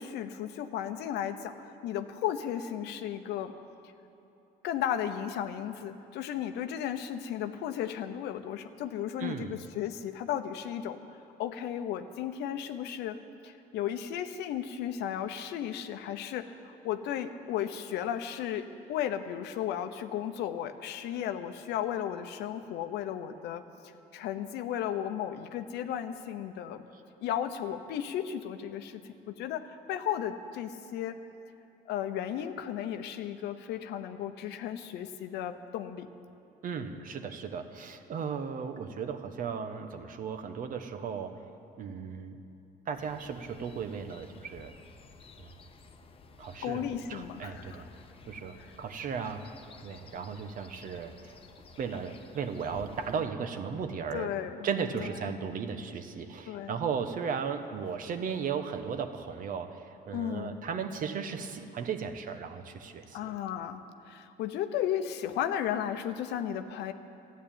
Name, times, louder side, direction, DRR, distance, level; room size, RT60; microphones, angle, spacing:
voice 1, 0.0-3.5 4.6-11.0 11.4-26.8 27.2-29.0 29.3-31.2 31.9-36.1 46.6-47.8 54.1-54.6 55.0-55.1 56.5-56.7 60.1-60.6 63.1-66.9, left 10 dB, 80° left, 9 dB, 0.8 m, -34 dB
voice 2, 9.2-9.6 36.6-41.4 41.8-42.4 42.9-44.7 45.4-45.5 46.4-46.8 47.1-47.9 48.3-49.4 49.8-51.3 51.8-54.3 54.6-63.3, right 6 dB, 55° right, 8 dB, 1.0 m, -36 dB
sound 1, 43.0-53.2, left 4 dB, 35° left, 0.9 m, -54 dB
13.0 x 9.4 x 8.8 m, 2.8 s
cardioid pair, 110°, 17 cm